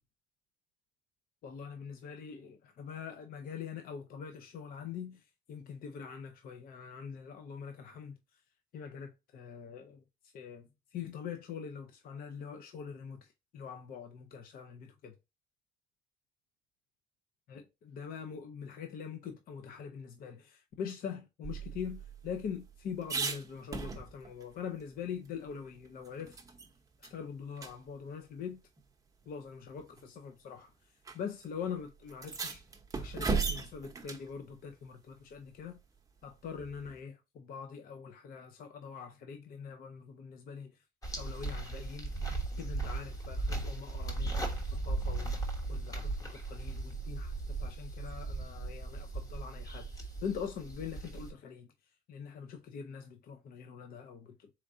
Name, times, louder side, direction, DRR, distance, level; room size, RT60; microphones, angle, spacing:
voice 1, 1.4-8.2 8.7-15.2 17.5-26.4 27.0-28.6 29.3-30.7 31.1-32.6 33.0-35.8 36.2-40.8 41.2-42.1 42.6-51.7 52.1-54.5, left 7 dB, 55° left, 0.7 m, -43 dB
sound 1, 21.4-24.4 24.8-24.9 25.2-26.7 27.0-27.2 27.6-27.7 28.8-28.9 29.8-30.0 31.0-31.2 31.4-31.5 32.1-34.3 36.6-37.0, right 4 dB, 20° right, 0.8 m, -37 dB
sound 2, 41.0-51.3, right 2 dB, 20° left, 1.1 m, -37 dB
4.4 x 3.6 x 2.6 m
cardioid pair, 120°, 18 cm